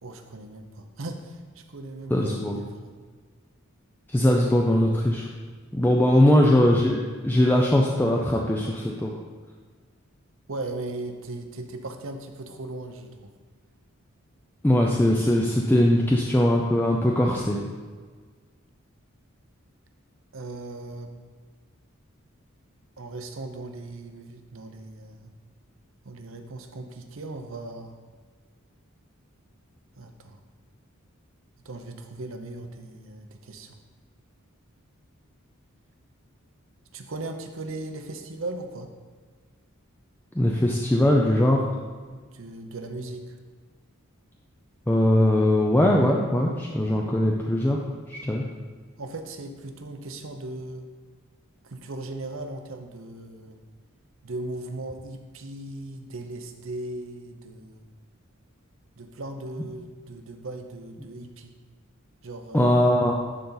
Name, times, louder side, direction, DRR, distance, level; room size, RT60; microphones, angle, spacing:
voice 1, 0.0-2.9 6.1-6.3 10.5-13.3 20.3-21.1 23.0-25.3 26.0-27.9 30.0-30.4 31.6-33.8 36.9-38.9 42.1-43.4 49.0-50.9 51.6-53.6 54.2-57.8 59.0-61.5 62.2-62.9, right 2 dB, 65° right, 6 dB, 0.8 m, -38 dB
voice 2, 2.1-2.6 4.1-5.3 5.7-9.2 14.6-17.6 40.3-41.7 44.9-47.8 48.1-48.4 62.5-63.2, left 1 dB, 10° left, -1 dB, 0.5 m, -21 dB
11.5 x 4.1 x 3.9 m, 1.5 s
head